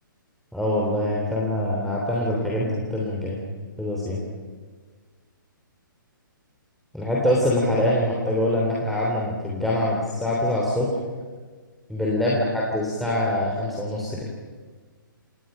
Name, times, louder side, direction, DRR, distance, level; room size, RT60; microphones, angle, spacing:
voice 1, 0.5-3.4 3.8-4.2 6.9-11.0 11.9-14.2, left 1 dB, ahead, -5 dB, 3.4 m, -24 dB
29.0 x 18.5 x 5.6 m, 1.5 s
hypercardioid pair, 140°, 11 cm